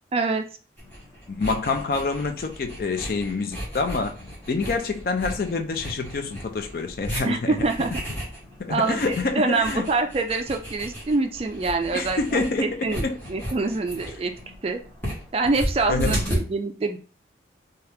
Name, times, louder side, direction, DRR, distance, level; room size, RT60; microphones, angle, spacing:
voice 1, 0.1-0.4 7.2-7.9 8.7-14.3 14.6-14.8 15.3-17.0, right 3 dB, 30° right, 0.3 m, -25 dB
sound 1, 0.8-16.4, equal, 10° left, 1.2 m, -35 dB
voice 2, 1.3-4.1 4.5-7.6 8.6-9.9 11.9-13.2 15.9-16.2, left 3 dB, 55° left, 0.4 m, -27 dB
2.8 x 2.3 x 3.3 m
head